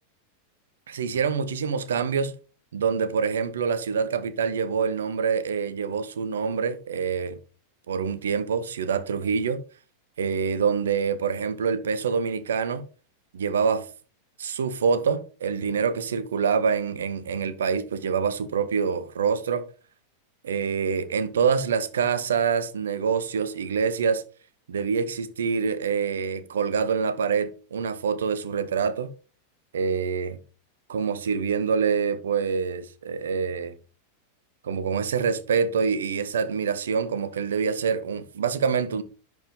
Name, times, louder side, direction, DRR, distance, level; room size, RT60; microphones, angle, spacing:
voice 1, 0.9-2.3 2.7-7.4 7.9-9.6 10.2-12.9 13.3-13.9 14.4-19.7 20.4-24.2 24.7-29.1 29.7-30.4 30.9-33.7 34.6-39.0, right 6 dB, 65° right, 0.8 m, -26 dB
10.5 x 4.7 x 3.6 m
figure-of-eight pair, 90°, 0 cm